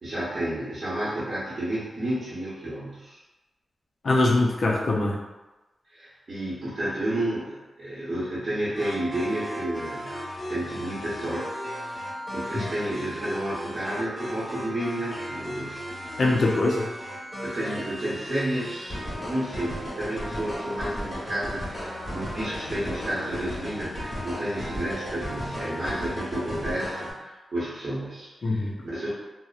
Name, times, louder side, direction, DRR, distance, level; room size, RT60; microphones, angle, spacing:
voice 1, 0.0-3.2 5.9-10.2 10.5-11.6 12.3-15.8 17.4-29.1, right 1 dB, 45° right, -10 dB, 0.9 m, -31 dB
voice 2, 4.0-5.2 12.6-12.7 16.2-16.8 28.4-28.7, left 2 dB, 55° left, -1 dB, 0.4 m, -22 dB
sound 1, 8.7-27.1, equal, 20° left, 1.1 m, -35 dB
2.7 x 2.0 x 2.4 m, 1.1 s
wide cardioid pair, 115°, 0 cm